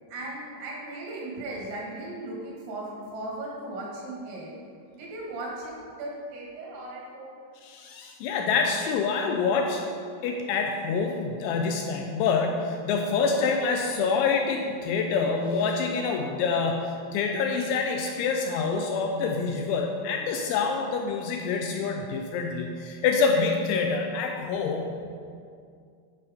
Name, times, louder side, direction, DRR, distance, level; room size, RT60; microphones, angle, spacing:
voice 1, 0.1-4.5 5.0-5.7 6.0-7.3, right 2 dB, 80° right, -3 dB, 4.3 m, -37 dB
voice 2, 7.6-9.9 10.2-24.9, left 5 dB, 85° left, 2 dB, 2.8 m, -26 dB
10.5 x 4.2 x 5.2 m, 2.3 s
omnidirectional pair, 5.7 m